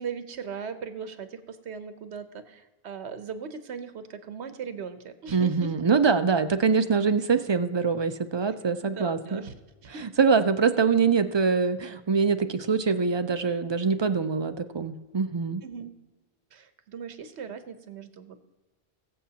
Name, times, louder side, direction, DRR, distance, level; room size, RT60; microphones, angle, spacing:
voice 1, 0.0-5.8 8.8-9.6 9.8-10.1 15.6-15.9 16.5-18.4, right 6 dB, 80° right, 10 dB, 1.1 m, -38 dB
voice 2, 5.3-9.4 10.2-15.6, right 5 dB, 40° right, 9 dB, 0.4 m, -24 dB
21.5 x 7.3 x 2.8 m, 1.2 s
omnidirectional pair, 1.1 m